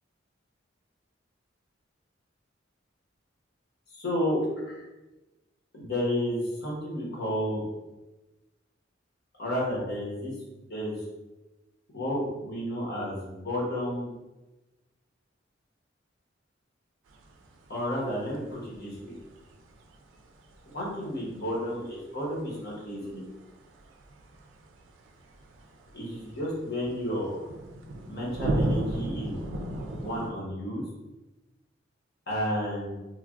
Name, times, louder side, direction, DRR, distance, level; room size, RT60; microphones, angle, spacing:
voice 1, 3.9-4.4 4.6-4.8 5.7-7.6 9.4-10.3 10.7-11.0 11.9-14.1 17.7-19.1 20.7-23.2 25.9-27.4 28.1-29.4 30.0-30.8 32.3-33.0, equal, 60° left, -5 dB, 1.0 m, -31 dB
sound 1, 17.1-30.3, right 1 dB, 90° right, 0.4 m, -37 dB
3.1 x 2.2 x 2.4 m, 1.1 s
head